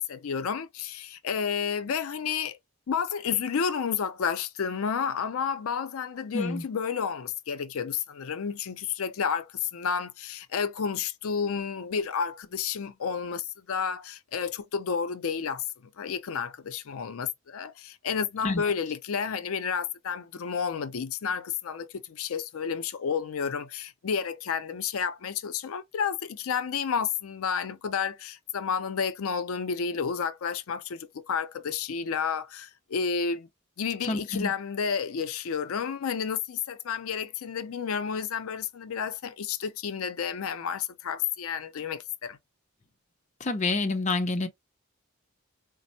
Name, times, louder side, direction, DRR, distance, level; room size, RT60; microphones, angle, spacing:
voice 1, 0.0-2.6 2.9-15.6 16.0-33.5 33.8-42.4, left 6 dB, 85° left, 0.5 m, -31 dB
voice 2, 6.3-6.6 18.4-18.6 34.1-34.5 43.4-44.5, left 3 dB, 35° left, 0.5 m, -28 dB
4.1 x 2.0 x 2.7 m
head